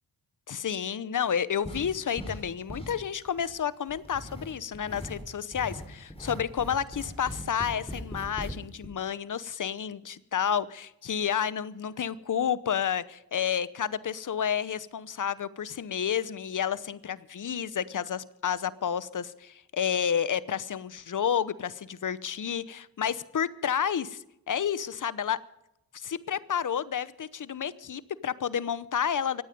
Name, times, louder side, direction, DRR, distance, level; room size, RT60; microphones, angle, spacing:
voice 1, 0.5-25.4 25.9-29.4, left 8 dB, 55° left, 16 dB, 0.9 m, -30 dB
sound 1, 1.6-2.4 2.7-3.5 3.9-5.2 5.5-8.5 8.8-8.9, equal, 15° left, 4.8 m, -40 dB
25.0 x 9.2 x 5.2 m, 0.84 s
cardioid pair, 55°, 38 cm